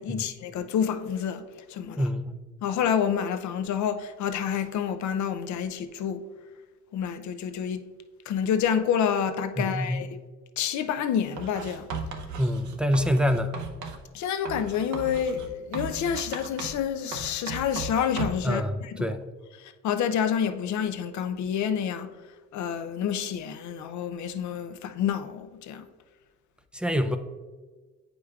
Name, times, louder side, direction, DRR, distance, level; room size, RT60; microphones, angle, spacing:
voice 1, 0.0-2.1 2.6-6.2 6.9-7.8 8.3-10.1 10.6-11.9 14.1-19.2 19.6-22.1 22.5-25.9, left 8 dB, 70° left, 0.6 m, -28 dB
voice 2, 2.0-2.3 9.6-10.0 12.4-13.5 18.4-19.3 26.7-27.2, equal, 5° right, 0.4 m, -26 dB
Writing, 11.4-14.0 14.4-16.9 17.1-18.5, right 4 dB, 75° right, 0.8 m, -37 dB
8.5 x 4.9 x 2.3 m
cardioid pair, 90°, 30 cm